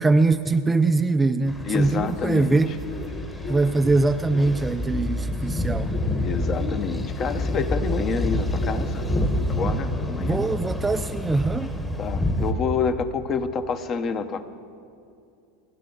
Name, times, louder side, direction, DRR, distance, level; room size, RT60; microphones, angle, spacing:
voice 1, 0.0-2.8 3.5-6.0 10.1-11.7, right 3 dB, 10° right, 9 dB, 0.4 m, -22 dB
sound 1, 1.5-12.5, left 1 dB, 10° left, 1.2 m, -28 dB
voice 2, 1.6-2.6 6.2-9.0 9.5-10.5 12.0-14.4, left 5 dB, 30° left, 10 dB, 0.9 m, -28 dB
sound 2, 2.1-5.6 5.9-9.3, left 5 dB, 65° left, 3.9 m, -39 dB
29.5 x 9.9 x 3.9 m, 2.5 s
supercardioid pair, 140°, 0 cm